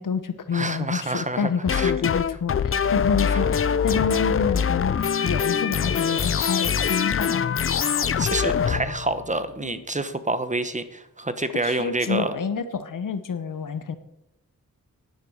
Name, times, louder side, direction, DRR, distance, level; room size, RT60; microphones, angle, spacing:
voice 1, 0.0-7.5 9.6-9.8 11.6-14.0, left 6 dB, 65° left, 11 dB, 1.0 m, -28 dB
voice 2, 0.5-1.9 3.3-3.4 8.2-12.4, right 2 dB, 20° right, 11 dB, 1.0 m, -28 dB
sound 1, 1.7-9.4, left 7 dB, 40° left, 0.5 m, -23 dB
10.5 x 10.5 x 6.4 m, 0.89 s
wide cardioid pair, 95°, 35 cm